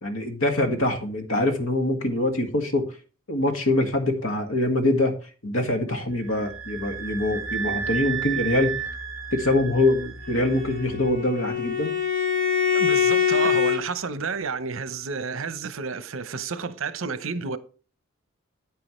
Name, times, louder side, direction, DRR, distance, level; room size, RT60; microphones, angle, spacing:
voice 1, 0.0-2.9 3.3-5.2 5.4-8.7 9.3-11.9, left 1 dB, 70° left, 1.9 m, -24 dB
sound 1, 6.1-11.1, right 7 dB, ahead, 3.1 m, -33 dB
Bowed string instrument, 10.3-13.8, left 7 dB, 45° left, 2.1 m, -24 dB
voice 2, 12.7-17.6, right 5 dB, 65° right, 0.8 m, -30 dB
9.5 x 9.4 x 3.2 m
head